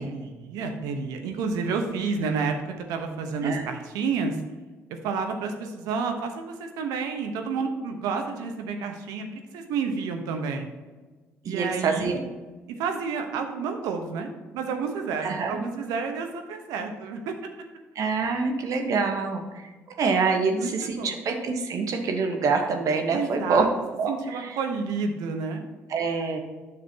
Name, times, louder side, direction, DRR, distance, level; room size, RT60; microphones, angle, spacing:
voice 1, 0.0-4.4 4.9-9.3 9.5-10.7 11.4-12.2 12.7-17.3 20.4-21.2 23.1-23.7 24.1-25.7, right 5 dB, 75° right, 5 dB, 1.0 m, -30 dB
voice 2, 11.4-12.2 15.2-15.6 17.9-19.4 20.0-23.7 24.0-24.5 25.9-26.4, right 4 dB, 60° right, 4 dB, 1.3 m, -26 dB
9.7 x 6.6 x 2.9 m, 1.3 s
hypercardioid pair, 55°, 7 cm